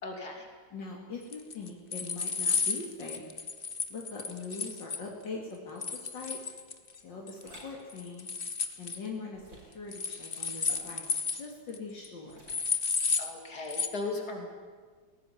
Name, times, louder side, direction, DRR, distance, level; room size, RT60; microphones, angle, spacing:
voice 1, 0.0-0.5 13.2-14.5, left 3 dB, 55° left, 2 dB, 3.8 m, -37 dB
voice 2, 0.7-3.2 3.9-6.4 7.0-8.3 8.8-9.4 9.7-12.4, left 4 dB, 75° left, -1 dB, 3.1 m, -42 dB
sound 1, 1.3-5.0 5.8-7.0 7.3-7.6 7.9-9.0 9.9-11.5 11.7-11.8 12.0-12.1 12.5-13.3 13.7-13.9, left 5 dB, 30° left, 1.3 m, -32 dB
sound 2, 7.3-7.8 9.3-9.8 10.5-11.1 12.3-12.8, right 1 dB, 80° right, 6.5 m, -53 dB
20.0 x 18.0 x 9.8 m, 1.5 s
omnidirectional pair, 2.0 m